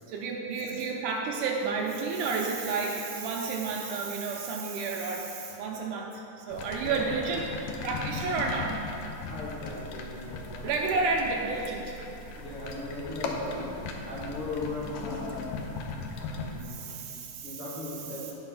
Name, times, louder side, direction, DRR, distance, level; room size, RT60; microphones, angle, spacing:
voice 1, 0.0-7.5 7.8-8.8 10.6-11.9 16.6-17.6, right 4 dB, 80° right, 0 dB, 2.1 m, -31 dB
sound 1, 6.5-16.6, left 3 dB, 80° left, 1.6 m, -38 dB
voice 2, 6.8-7.4 8.1-8.4 9.3-10.8 12.4-15.7 16.2-17.0 17.4-18.3, left 2 dB, 50° left, -8 dB, 2.1 m, -38 dB
11.5 x 4.4 x 5.6 m, 2.9 s
omnidirectional pair, 3.9 m